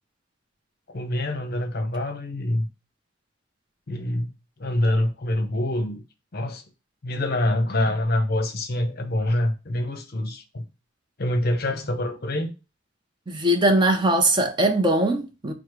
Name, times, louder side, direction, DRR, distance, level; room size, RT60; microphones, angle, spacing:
voice 1, 0.9-2.7 3.9-4.3 4.6-6.0 6.3-6.6 7.0-10.7 11.2-12.5, left 1 dB, 50° left, 0.7 m, -25 dB
voice 2, 13.3-15.5, right 1 dB, 25° right, 0.5 m, -21 dB
4.8 x 2.0 x 4.6 m
head